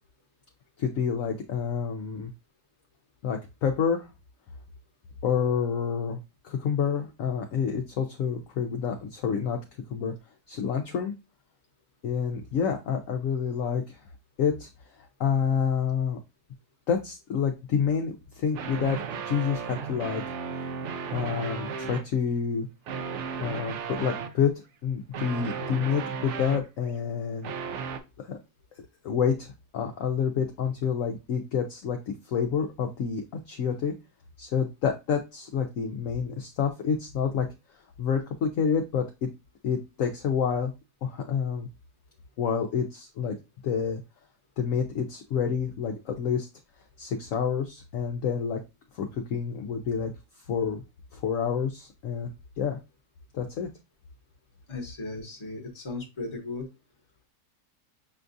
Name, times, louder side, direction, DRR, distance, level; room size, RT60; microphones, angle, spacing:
voice 1, 0.8-2.3 3.2-4.1 5.2-6.2 6.4-9.6 9.9-10.1 10.5-11.1 12.0-14.0 14.4-14.7 15.0-16.2 16.9-20.2 21.1-22.7 23.4-24.5 24.8-27.5 28.2-28.4 29.0-32.0 32.2-33.9 34.4-37.5 38.0-39.3 39.6-40.7 41.0-41.7 42.4-43.4 43.6-44.0 44.6-46.5 47.0-48.6 48.9-50.1 50.5-50.8 51.1-52.3 52.6-52.8 53.3-53.7, left 7 dB, 65° left, 3 dB, 0.8 m, -28 dB
sound 1, 18.5-22.1 22.9-24.4 25.1-26.9 27.4-28.0, right 6 dB, 80° right, 0.6 m, -34 dB
voice 2, 54.7-56.7, left 3 dB, 20° left, 1 dB, 0.8 m, -36 dB
6.8 x 2.3 x 2.5 m, 0.25 s
omnidirectional pair, 1.8 m